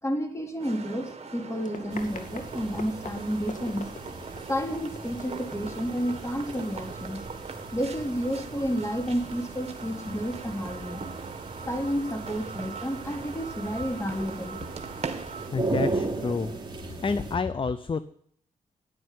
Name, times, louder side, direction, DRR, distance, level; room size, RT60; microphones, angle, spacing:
voice 1, 0.0-3.9 4.4-7.2 7.7-11.0 11.7-14.6, equal, 20° left, 3 dB, 3.8 m, -31 dB
sound 1, 0.6-15.5, right 5 dB, 45° right, 2.0 m, -41 dB
Run, 1.4-6.9, left 4 dB, 60° left, 2.3 m, -45 dB
sound 2, 1.9-17.4, right 3 dB, 30° right, 3.3 m, -38 dB
voice 2, 15.5-16.5 16.9-18.0, left 4 dB, 35° left, 14 dB, 0.7 m, -29 dB
12.5 x 10.5 x 9.6 m, 0.67 s
cardioid pair, 70°, 15 cm